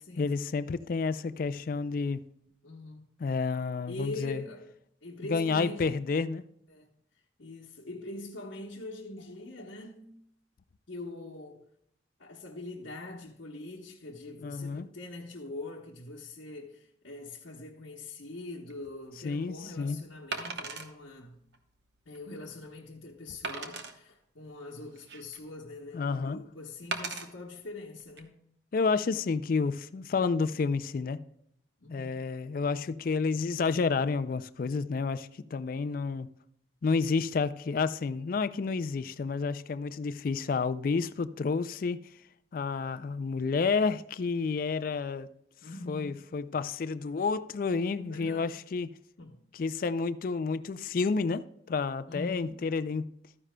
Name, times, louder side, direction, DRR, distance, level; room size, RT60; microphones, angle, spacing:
voice 1, 0.2-2.2 3.2-4.4 5.3-6.4 14.4-14.9 19.2-20.0 25.9-26.4 28.7-31.2 31.9-36.3 36.8-42.0 42.5-45.3 45.9-48.9 49.5-51.4 51.7-53.1, left 4 dB, 50° left, 0.3 m, -30 dB
voice 2, 2.6-3.1 3.9-4.7 5.0-6.1 6.7-6.9 7.4-10.1 10.9-11.7 12.2-21.4 22.1-28.4 31.8-32.3 45.6-46.2 48.1-48.6 49.2-49.4 52.1-52.7, left 2 dB, 80° left, 1.0 m, -43 dB
Wood, 18.7-18.9 20.3-20.9 21.5-21.6 22.1-22.2 23.4-23.9 24.7-25.5 26.9-27.3 28.0-28.2, right 4 dB, 65° right, 1.0 m, -37 dB
13.5 x 9.8 x 2.2 m
head